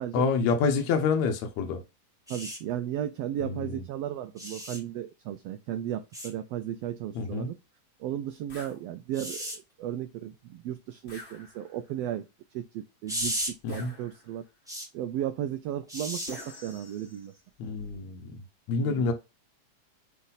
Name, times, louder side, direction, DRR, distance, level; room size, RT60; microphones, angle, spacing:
voice 1, 0.1-1.8 3.4-3.8 7.2-7.5 13.6-13.9 17.6-18.2 18.7-19.1, left 5 dB, 70° left, 2.1 m, -27 dB
sound 1, 2.3-2.6 4.4-4.8 6.1-6.3 9.1-9.6 13.1-13.5 14.7-14.9 15.9-16.3 17.8-18.0, equal, ahead, 1.0 m, -34 dB
voice 2, 2.3-7.6 8.0-12.2 12.5-14.4 14.9-17.3 18.8-19.1, right 11 dB, 85° right, 1.4 m, -35 dB
sound 2, 8.5-8.8 11.1-11.9 13.7-14.5 16.3-17.4, left 1 dB, 35° left, 1.1 m, -46 dB
8.2 x 3.2 x 4.0 m
omnidirectional pair, 3.4 m